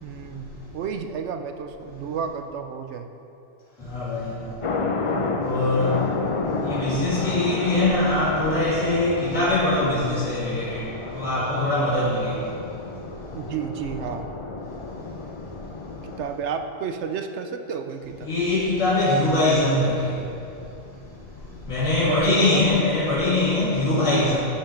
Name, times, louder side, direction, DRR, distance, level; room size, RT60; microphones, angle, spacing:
voice 1, 0.0-3.1 13.3-14.3 16.0-18.3 22.0-22.6, right 6 dB, 70° right, 7 dB, 0.8 m, -31 dB
voice 2, 3.9-4.3 5.4-5.9 6.6-10.8 11.1-12.4 18.3-20.1 21.7-24.4, left 2 dB, 85° left, -11 dB, 2.7 m, -22 dB
sound 1, 4.6-16.2, left 3 dB, 55° left, 0.3 m, -31 dB
11.5 x 5.9 x 4.3 m, 2.7 s
omnidirectional pair, 1.3 m